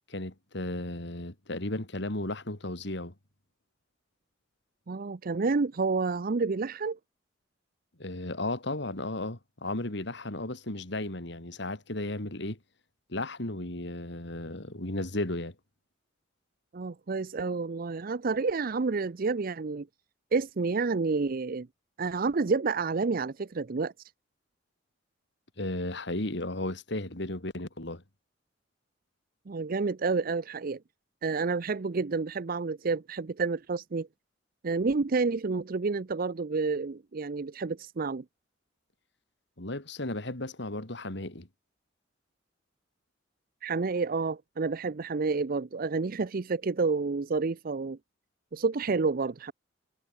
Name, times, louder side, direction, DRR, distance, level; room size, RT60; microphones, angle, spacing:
voice 1, 0.1-3.1 8.0-12.6 13.1-15.5 25.6-28.0 39.6-41.5, left 2 dB, 65° left, 2.9 m, -34 dB
voice 2, 4.9-7.0 16.7-19.9 20.3-21.7 22.0-24.1 29.5-30.8 31.2-34.1 34.6-38.2 43.6-48.0 48.5-49.5, right 4 dB, 50° right, 0.6 m, -29 dB
head